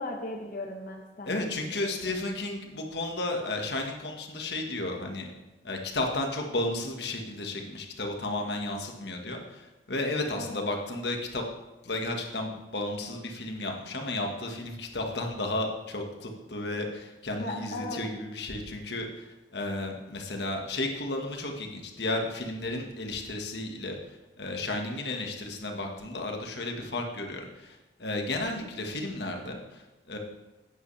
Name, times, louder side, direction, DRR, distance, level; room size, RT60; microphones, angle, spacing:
voice 1, 0.0-1.9 10.3-10.6 17.4-18.0, left 2 dB, 50° left, 0 dB, 1.1 m, -37 dB
voice 2, 1.3-5.3 5.6-11.4 11.8-24.0 24.4-30.2, left 2 dB, 70° left, 2 dB, 1.5 m, -33 dB
11.0 x 9.3 x 3.3 m, 1.1 s
head